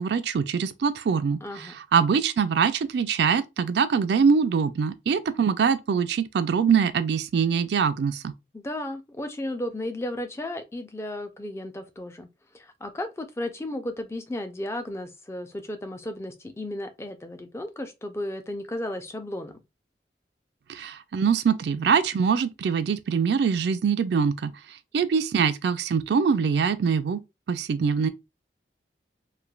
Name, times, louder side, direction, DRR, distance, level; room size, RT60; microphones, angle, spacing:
voice 1, 0.0-8.3 20.7-24.5 24.9-27.2 27.5-28.1, right 6 dB, 70° right, 0.3 m, -23 dB
voice 2, 1.4-1.8 8.5-12.3 12.5-19.5, left 1 dB, 15° left, 0.4 m, -34 dB
3.2 x 2.2 x 2.2 m
head